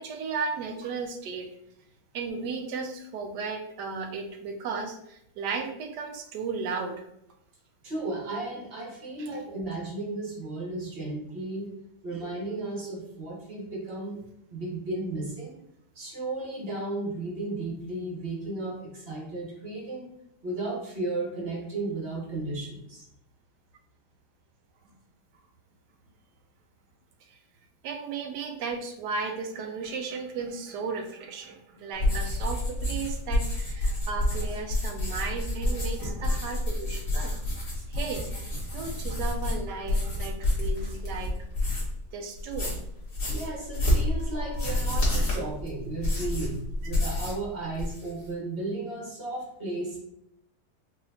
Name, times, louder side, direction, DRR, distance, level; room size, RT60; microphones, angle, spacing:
voice 1, 0.0-1.5 2.1-7.1 9.2-9.3 27.3-27.4 27.8-41.3 41.7-41.8 42.1-42.7, right 5 dB, 75° right, 4 dB, 1.2 m, -35 dB
voice 2, 7.8-11.7 12.0-14.2 14.5-15.6 15.9-20.1 20.4-23.1 43.3-50.0, right 2 dB, 40° right, -3 dB, 1.1 m, -34 dB
sound 1, 31.9-42.0 42.4-47.4 47.7-48.2, left 1 dB, 45° left, 1.7 m, -29 dB
5.0 x 2.7 x 2.7 m, 0.77 s
omnidirectional pair, 1.9 m